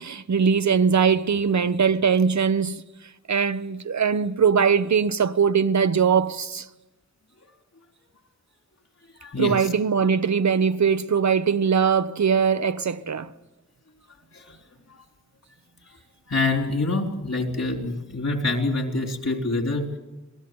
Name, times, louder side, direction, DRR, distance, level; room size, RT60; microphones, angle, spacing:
voice 1, 0.0-2.8 3.3-6.7 9.4-13.3, right 6 dB, 75° right, 0.8 m, -21 dB
voice 2, 9.2-9.7 14.3-14.6 14.9-15.0 16.3-19.8, left 2 dB, 65° left, 3.8 m, -26 dB
26.5 x 18.5 x 7.9 m
wide cardioid pair, 75°, 29 cm